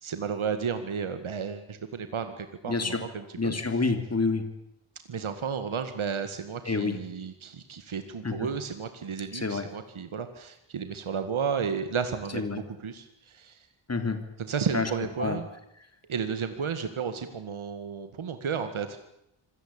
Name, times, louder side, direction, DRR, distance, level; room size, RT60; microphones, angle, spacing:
voice 1, 0.0-3.5 5.1-13.7 14.4-15.5 16.1-19.0, right 6 dB, 70° right, 9 dB, 2.0 m, -33 dB
voice 2, 2.7-3.0 3.4-4.4 6.7-7.0 8.2-8.5 9.3-9.6 12.3-12.6 13.9-14.2 14.7-14.9 15.2-15.4, left 3 dB, 30° left, 7 dB, 3.2 m, -28 dB
25.5 x 18.0 x 8.8 m, 0.81 s
wide cardioid pair, 100°, 50 cm